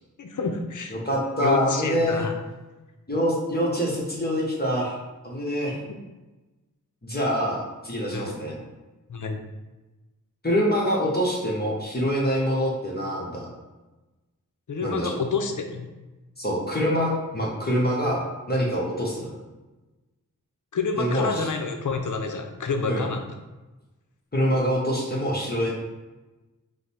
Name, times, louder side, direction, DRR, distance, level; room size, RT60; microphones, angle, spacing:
voice 1, 0.2-0.9 1.4-2.3 8.1-8.4 9.1-9.4 14.7-15.9 20.7-23.3, left 4 dB, 70° left, 5 dB, 0.6 m, -28 dB
voice 2, 0.9-2.2 3.1-5.0 5.2-5.8 7.0-8.6 10.4-13.5 14.8-15.2 16.4-18.2 18.5-19.4 21.0-21.5 22.9-23.1 24.3-25.7, equal, 30° left, -4 dB, 0.9 m, -25 dB
5.1 x 2.0 x 4.2 m, 1.1 s
wide cardioid pair, 80°, 32 cm